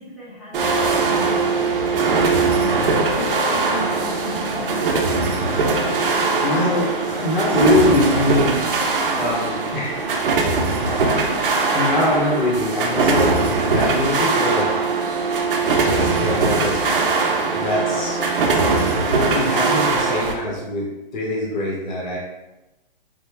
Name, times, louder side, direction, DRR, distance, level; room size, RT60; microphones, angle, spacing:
voice 1, 0.0-5.0, left 2 dB, ahead, -12 dB, 0.6 m, -36 dB
sound 1, 0.5-20.3, right 3 dB, 65° right, 0.6 m, -20 dB
voice 2, 6.4-8.8 9.2-10.4 11.7-14.7 15.7-16.8 17.5-18.2 18.9-22.2, left 1 dB, 50° left, -3 dB, 0.8 m, -23 dB
3.3 x 2.1 x 3.3 m, 1.0 s
hypercardioid pair, 160°, 29 cm